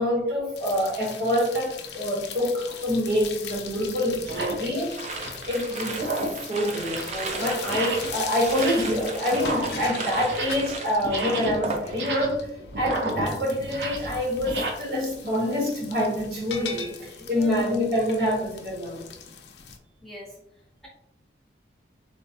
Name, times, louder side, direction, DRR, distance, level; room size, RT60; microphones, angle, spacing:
voice 1, 0.0-5.0 5.5-6.1 6.4-12.5 12.8-19.1, equal, 70° right, 1.2 m, -26 dB
sound 1, 0.6-19.8, left 7 dB, 70° left, 0.5 m, -40 dB
sound 2, 2.6-2.8 3.5-3.6 4.2-4.6 5.0-5.5 5.9-6.4 6.8-7.2 7.6-8.2 8.4-9.0 9.3-10.7 11.0-14.7, right 2 dB, 90° right, 0.7 m, -32 dB
sound 3, 4.9-12.3 12.6-13.1, right 3 dB, 40° right, 0.4 m, -35 dB
voice 2, 17.3-17.7 20.0-20.4, equal, ahead, 0.8 m, -40 dB
3.7 x 2.2 x 2.8 m
head